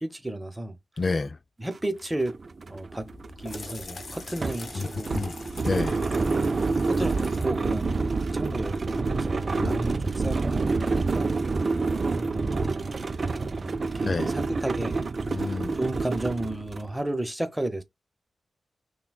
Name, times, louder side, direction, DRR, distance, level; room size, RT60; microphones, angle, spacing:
voice 1, 0.0-0.8 1.6-2.4 2.7-3.1 3.4-5.2 6.8-11.8 12.2-15.0 15.7-17.8, right 1 dB, 15° right, 0.8 m, -33 dB
voice 2, 1.0-1.4 4.8-5.3 5.6-6.0 9.5-9.8 14.0-14.3 15.3-15.7, left 3 dB, 45° left, 0.4 m, -29 dB
sound 1, 1.7-1.8 2.1-16.9, right 3 dB, 50° right, 0.3 m, -28 dB
sound 2, 3.0-8.5, left 4 dB, 60° left, 1.1 m, -44 dB
5.9 x 2.2 x 2.2 m
cardioid pair, 60°, 0 cm